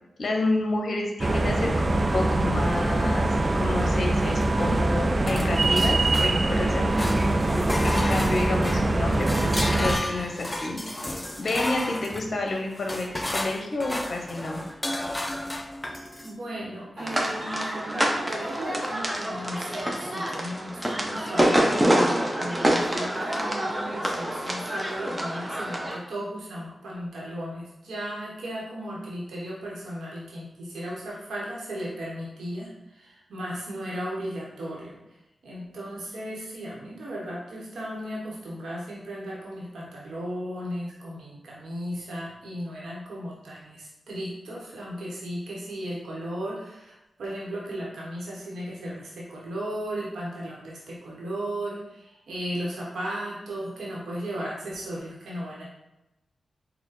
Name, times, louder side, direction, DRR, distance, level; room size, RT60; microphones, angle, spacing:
voice 1, 0.2-3.3 3.5-7.1 7.8-10.8 11.4-14.6, left 2 dB, 65° left, 2 dB, 0.6 m, -29 dB
sound 1, 1.2-10.0, right 2 dB, 40° right, 0.3 m, -23 dB
sound 2, 5.3-6.6 6.9-16.3, left 1 dB, 20° left, 0.5 m, -33 dB
voice 2, 16.2-35.0 35.4-55.6, equal, 85° right, -5 dB, 1.0 m, -35 dB
sound 3, 17.0-26.0, right 1 dB, 15° right, 0.8 m, -26 dB
4.1 x 2.1 x 4.0 m, 0.94 s
cardioid pair, 45°, 0 cm